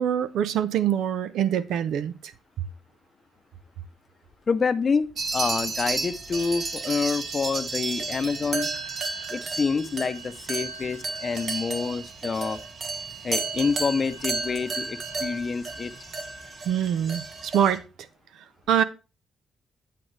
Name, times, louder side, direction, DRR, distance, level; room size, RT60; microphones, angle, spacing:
voice 1, 0.0-2.3 16.7-17.8 18.7-18.8, right 9 dB, 85° right, 0.6 m, -24 dB
voice 2, 4.5-8.7 9.3-12.6 13.2-15.9, left 5 dB, 40° left, 0.7 m, -27 dB
sound 1, 5.2-17.8, right 3 dB, 50° right, 1.4 m, -32 dB
8.6 x 7.7 x 3.3 m
cardioid pair, 95°, 0 cm